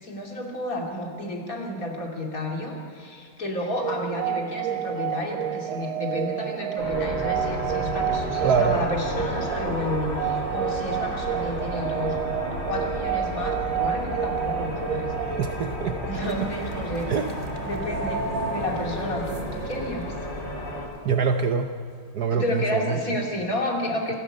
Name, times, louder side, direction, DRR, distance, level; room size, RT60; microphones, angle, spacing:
voice 1, 0.0-12.2 12.6-15.4 16.1-17.1 17.6-20.1 22.3-24.2, left 1 dB, 45° left, 0 dB, 3.1 m, -31 dB
sound 1, 3.8-16.6, right 10 dB, 85° right, 1.5 m, -30 dB
All Dark, 6.8-20.8, left 1 dB, 85° left, 7.2 m, -32 dB
voice 2, 8.4-8.9 15.4-16.0 17.1-17.3 21.0-21.7 22.1-23.0, right 6 dB, 60° right, 6 dB, 1.2 m, -24 dB
sound 2, 16.2-22.2, right 3 dB, 25° right, 0.8 m, -41 dB
26.5 x 11.5 x 8.8 m, 2.2 s
omnidirectional pair, 2.2 m